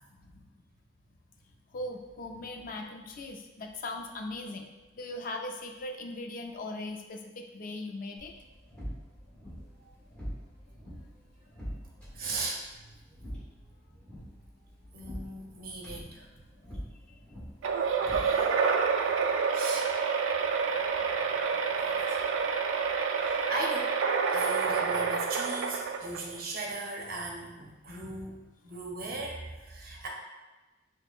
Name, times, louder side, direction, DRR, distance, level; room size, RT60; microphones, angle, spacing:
voice 1, 1.7-4.7 5.0-8.3 19.2-19.4 21.0-21.1 21.9-22.1, left 2 dB, 45° left, 3 dB, 0.4 m, -39 dB
sound 1, 8.2-18.7, equal, 5° left, 1.0 m, -45 dB
voice 2, 10.8-11.1 12.1-12.6 14.9-16.5 18.1-18.5 19.5-19.9 21.8-22.3 23.2-23.9 24.3-28.4 28.6-30.1, right 2 dB, 50° right, -1 dB, 0.7 m, -38 dB
sound 2, 17.6-26.4, right 5 dB, 90° right, 0.3 m, -28 dB
6.0 x 2.1 x 2.4 m, 1.1 s
head